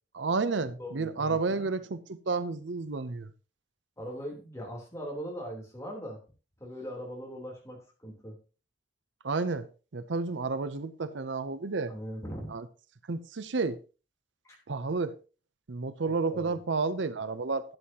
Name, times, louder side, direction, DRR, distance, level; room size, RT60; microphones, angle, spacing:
voice 1, 0.1-3.3 9.2-9.7 9.9-11.9 12.5-12.6 13.1-13.8 14.7-15.1 15.7-17.8, right 4 dB, 80° right, 0.7 m, -31 dB
voice 2, 0.8-1.7 4.0-6.2 6.6-8.4 11.9-12.5 14.4-14.6 16.3-16.6, equal, 15° left, 3.5 m, -40 dB
12.0 x 9.5 x 2.9 m
head